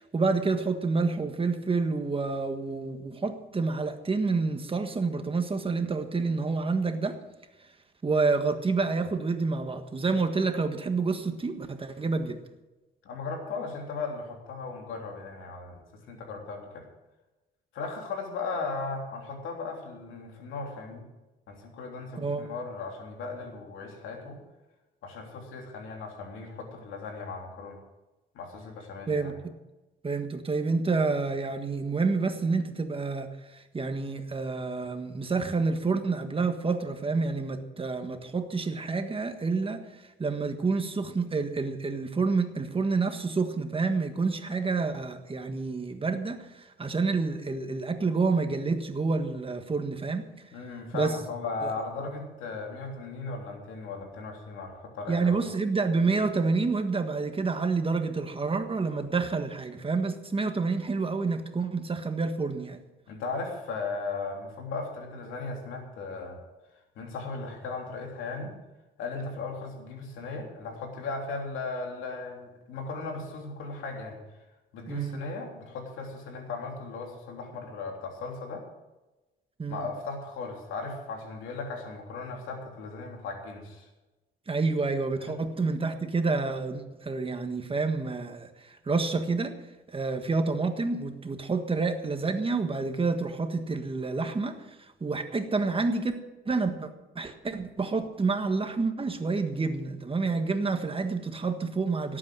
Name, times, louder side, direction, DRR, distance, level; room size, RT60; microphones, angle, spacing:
voice 1, 0.0-7.2 8.0-12.4 22.2-22.5 29.1-29.5 30.0-39.8 40.2-50.3 50.9-51.1 51.6-51.7 55.1-62.8 74.9-75.2 79.6-79.9 84.5-89.5 89.9-96.2 96.4-96.9 97.1-102.2, right 4 dB, 25° right, 7 dB, 1.6 m, -28 dB
voice 2, 13.0-15.8 16.1-16.9 17.7-21.0 21.5-24.4 25.0-27.8 28.3-29.4 50.5-55.4 63.1-66.4 66.9-68.5 69.0-74.2 74.7-78.6 79.7-83.9 85.2-85.3, left 3 dB, 90° left, 1 dB, 3.2 m, -37 dB
17.5 x 8.7 x 6.3 m, 1.1 s
cardioid pair, 90°, 20 cm